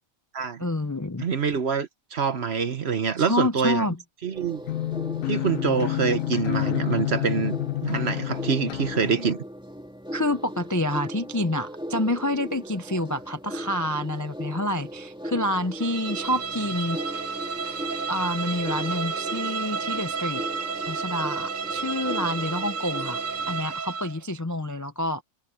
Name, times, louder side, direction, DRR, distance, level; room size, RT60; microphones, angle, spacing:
voice 1, 0.6-1.3 3.2-4.0 10.1-17.3 18.1-20.4 20.9-25.2, left 1 dB, 20° left, 0.5 m, -28 dB
voice 2, 1.2-3.9 4.2-4.6 5.3-7.6 7.8-9.4, right 6 dB, 55° right, 1.3 m, -25 dB
sound 1, 4.3-23.8, equal, 5° right, 2.8 m, -38 dB
sound 2, 4.6-9.2, left 16 dB, 80° left, 1.0 m, -29 dB
Bowed string instrument, 15.8-24.2, right 5 dB, 70° right, 1.9 m, -31 dB
omnidirectional pair, 1.4 m